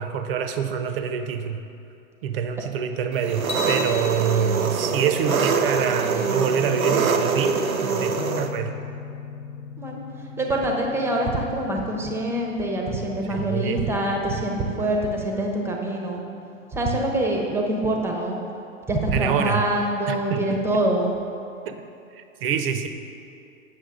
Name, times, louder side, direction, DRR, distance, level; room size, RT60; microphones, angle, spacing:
voice 1, 0.0-1.6 2.2-8.8 13.3-13.9 19.1-19.7 20.1-20.9 21.6-21.8 22.1-22.9, right 7 dB, 45° right, 8 dB, 0.6 m, -26 dB
Engine, 3.2-8.5, right 5 dB, 85° right, 0.6 m, -24 dB
sound 1, 3.5-5.8, left 2 dB, 85° left, 1.2 m, -36 dB
sound 2, 8.1-16.9, left 6 dB, 50° left, 0.7 m, -42 dB
voice 2, 9.8-16.2 16.7-18.4 18.9-21.1, right 1 dB, 5° right, 0 dB, 0.7 m, -25 dB
8.2 x 6.2 x 3.7 m, 2.6 s
figure-of-eight pair, 105°, 41 cm